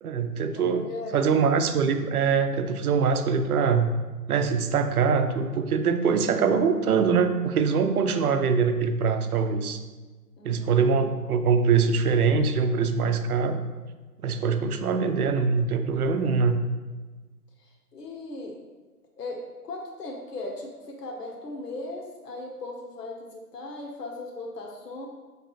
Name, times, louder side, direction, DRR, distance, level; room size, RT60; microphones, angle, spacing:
voice 1, 0.0-0.9 1.1-3.9 4.3-9.8 10.4-13.7 14.2-16.6, right 5 dB, 65° right, 8 dB, 0.6 m, -23 dB
voice 2, 0.5-1.4 8.1-8.4 10.4-11.1 17.6-18.6 19.2-25.1, left 2 dB, 80° left, 0 dB, 1.0 m, -38 dB
5.1 x 3.2 x 3.0 m, 1.3 s
hypercardioid pair, 155°, 47 cm